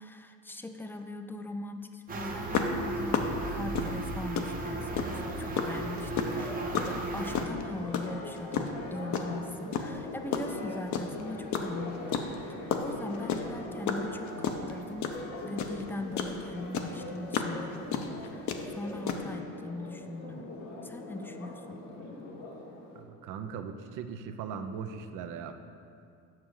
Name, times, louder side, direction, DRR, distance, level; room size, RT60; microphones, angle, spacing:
voice 1, 0.0-3.2 3.5-12.2 12.5-15.1 15.4-18.5 18.8-20.5 20.8-21.8, left 2 dB, 5° left, 6 dB, 0.4 m, -40 dB
sound 1, 2.1-7.4, right 2 dB, 25° right, 0.9 m, -36 dB
sound 2, 2.5-5.2 5.6-9.3 9.7-11.2 11.5-16.4 16.7-19.2, left 7 dB, 50° left, 0.8 m, -31 dB
Church bell, 4.7-23.0, left 2 dB, 75° left, 1.6 m, -43 dB
voice 2, 22.9-25.5, right 6 dB, 60° right, 8 dB, 0.7 m, -39 dB
7.4 x 5.9 x 4.8 m, 2.4 s
supercardioid pair, 100°, 36 cm